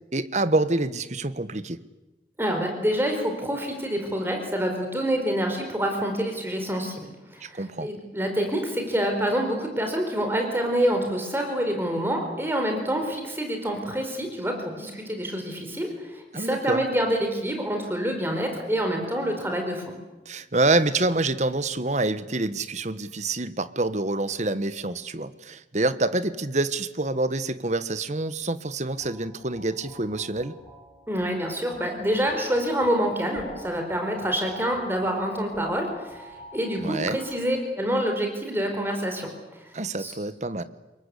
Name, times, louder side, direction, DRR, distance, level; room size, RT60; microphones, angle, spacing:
voice 1, 0.1-1.8 7.4-7.9 16.3-16.8 20.2-30.5 36.8-37.2 39.7-40.6, right 2 dB, 40° right, 13 dB, 1.3 m, -26 dB
voice 2, 2.4-19.8 31.1-39.3 39.6-39.7 40.0-40.1, equal, 15° right, 3 dB, 4.4 m, -27 dB
sound 1, 29.0-37.7, left 1 dB, 25° left, 7.3 m, -45 dB
27.0 x 22.5 x 8.3 m, 1.1 s
head